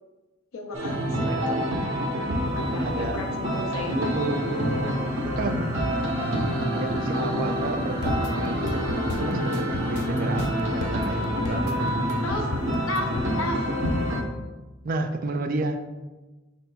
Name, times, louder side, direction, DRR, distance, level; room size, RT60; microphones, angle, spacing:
voice 1, 0.5-1.7 2.6-4.0 12.2-12.5 12.9-13.1 13.4-13.7, left 2 dB, 85° left, 3 dB, 0.7 m, -33 dB
sound 1, 0.7-14.2, equal, 70° right, 0.8 m, -27 dB
voice 2, 1.2-1.6 2.8-3.2 3.6-4.9 5.2-5.7 6.7-11.8 14.8-15.8, right 2 dB, 45° right, 6 dB, 0.4 m, -31 dB
Singing, 3.5-14.2, equal, 15° right, 1.0 m, -34 dB
sound 2, 8.0-13.3, left 3 dB, 55° left, 0.3 m, -35 dB
5.6 x 4.3 x 2.2 m, 1.2 s
head